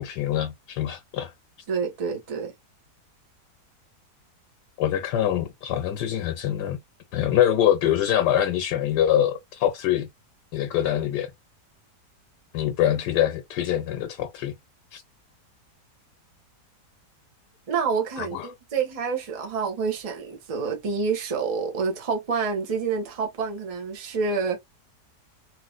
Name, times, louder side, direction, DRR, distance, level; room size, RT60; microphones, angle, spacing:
voice 1, 0.0-1.3 4.8-6.8 7.1-10.1 10.5-11.3 12.5-14.5 14.9-15.0 18.2-18.5, left 11 dB, 80° left, 1.2 m, -24 dB
voice 2, 1.7-2.5 17.7-24.6, right 5 dB, 30° right, 0.7 m, -28 dB
3.1 x 2.8 x 2.4 m
omnidirectional pair, 1.8 m